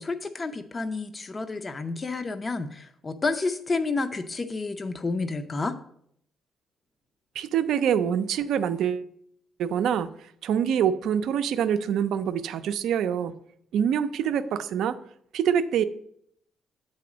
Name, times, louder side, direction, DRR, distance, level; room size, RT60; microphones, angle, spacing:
voice 1, 0.0-5.8, left 3 dB, 30° left, 0.5 m, -30 dB
voice 2, 7.3-9.1 9.6-10.1 10.4-13.3 13.7-15.0 15.3-15.8, right 8 dB, 80° right, 0.4 m, -25 dB
8.5 x 4.1 x 4.9 m
cardioid pair, 90°, 0 cm